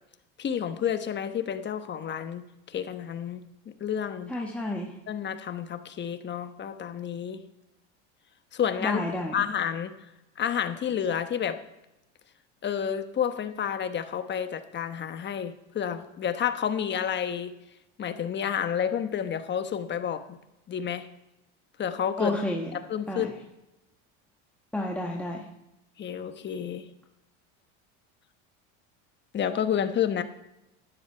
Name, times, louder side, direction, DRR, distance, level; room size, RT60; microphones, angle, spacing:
voice 1, 0.4-3.4 3.8-4.3 5.1-7.4 8.5-9.0 9.3-9.9 10.4-11.6 12.6-17.5 18.0-20.4 20.7-21.1 21.8-22.4 22.7-23.3 26.0-26.9 29.3-30.2, left 8 dB, 30° left, 9 dB, 1.1 m, -30 dB
voice 2, 4.3-4.9 8.8-9.3 22.2-22.7 23.1-23.3 24.7-25.5, left 1 dB, 5° left, -1 dB, 1.2 m, -30 dB
12.5 x 10.0 x 4.5 m, 0.92 s
supercardioid pair, 115°, 35 cm